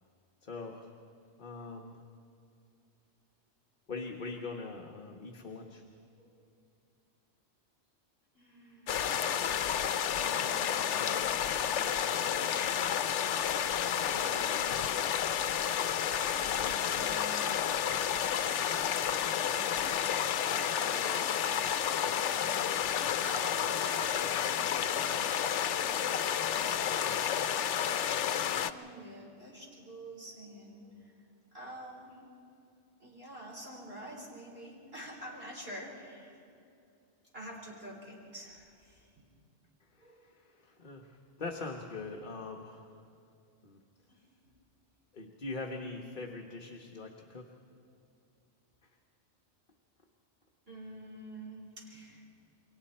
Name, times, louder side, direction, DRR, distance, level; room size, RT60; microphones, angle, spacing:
voice 1, 0.4-0.9 1.4-2.0 3.9-5.8 39.9-43.1 43.6-43.8 45.1-47.5 48.8-48.9, left 3 dB, 45° left, 1 dB, 1.3 m, -42 dB
voice 2, 8.3-9.5 10.1-11.3 11.7-13.4 14.0-15.8 16.4-18.0 18.4-19.8 20.5-21.6 21.9-27.0 27.4-31.2 31.5-32.2 33.0-36.4 37.3-39.1 40.0-40.3 44.1-44.5 50.7-52.3, right 1 dB, 55° right, -2 dB, 4.6 m, -48 dB
sound 1, 8.9-28.7, left 9 dB, 80° left, 1.0 m, -31 dB
29.0 x 23.0 x 4.3 m, 2.5 s
omnidirectional pair, 1.2 m